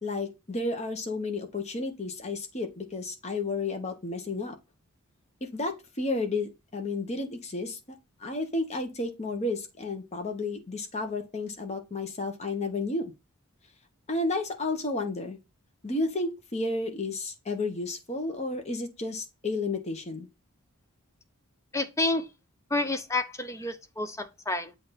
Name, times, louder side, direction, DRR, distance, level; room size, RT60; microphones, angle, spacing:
voice 1, 0.0-4.5 5.4-13.1 14.1-15.4 15.8-20.3, left 2 dB, 30° left, 1.1 m, -32 dB
voice 2, 21.7-22.3 22.7-24.7, left 2 dB, 15° left, 0.6 m, -29 dB
7.7 x 2.6 x 5.7 m
head